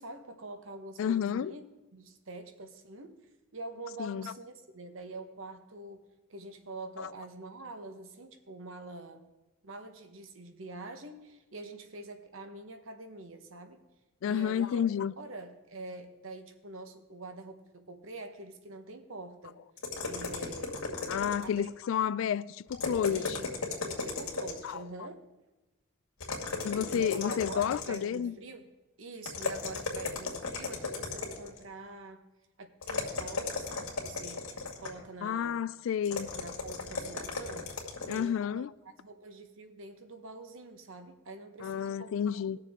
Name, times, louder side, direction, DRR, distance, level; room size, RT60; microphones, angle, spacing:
voice 1, 0.0-1.6 1.9-3.2 3.5-9.2 9.6-13.8 14.2-14.8 15.2-19.6 20.0-20.8 21.4-21.7 23.1-23.5 24.0-25.2 26.9-28.7 29.0-32.2 32.6-34.5 34.8-35.6 36.3-38.7 39.0-42.1, right 2 dB, 70° right, 1.0 m, -45 dB
voice 2, 1.0-1.5 4.0-4.3 7.0-7.1 14.2-15.1 21.1-23.4 24.6-24.8 26.6-28.3 35.2-36.3 38.1-38.7 41.6-42.6, left 8 dB, 65° left, 0.3 m, -31 dB
sound 1, 19.8-21.7 22.7-24.7 26.2-28.2 29.2-31.6 32.8-35.0 36.0-38.3, left 4 dB, 90° left, 2.2 m, -36 dB
19.5 x 6.8 x 3.6 m
head